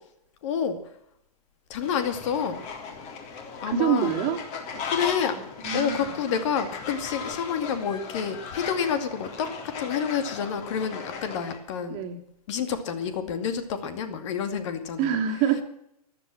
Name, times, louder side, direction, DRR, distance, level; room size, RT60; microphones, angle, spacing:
voice 1, 0.4-0.8 1.7-2.6 3.6-4.1 4.9-5.4 5.7-9.5 9.8-12.0 12.5-15.2, left 7 dB, 50° left, 9 dB, 2.3 m, -28 dB
Fowl, 1.8-11.6, left 5 dB, 35° left, 3.5 m, -37 dB
voice 2, 3.7-4.4 4.7-4.8 5.3-6.0 11.9-12.2 15.0-15.6, right 9 dB, 35° right, 3 dB, 2.2 m, -26 dB
14.0 x 11.0 x 7.5 m, 0.75 s
hypercardioid pair, 125°, 20 cm